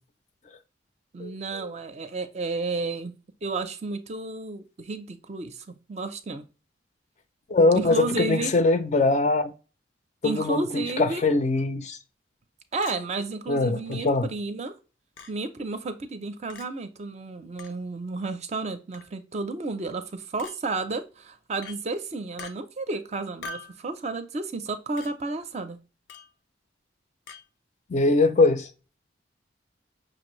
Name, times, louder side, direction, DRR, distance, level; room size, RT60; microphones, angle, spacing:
voice 1, 1.1-3.1 3.4-6.4 7.7-8.5 10.2-11.2 12.7-14.7 15.3-25.8, right 3 dB, 35° right, 0.5 m, -32 dB
voice 2, 7.5-9.5 10.2-12.0 13.5-14.3 27.9-28.7, left 3 dB, 40° left, 0.4 m, -22 dB
Chink clink, 12.8-13.0 13.9-14.0 15.2-15.3 16.5-16.7 17.6-17.8 18.9-19.2 20.4-20.6 21.6-21.8 22.4-22.5 23.4-23.8 25.0-25.1 26.1-26.3 27.3-27.4, left 4 dB, 90° left, 0.6 m, -42 dB
5.9 x 2.6 x 3.0 m
head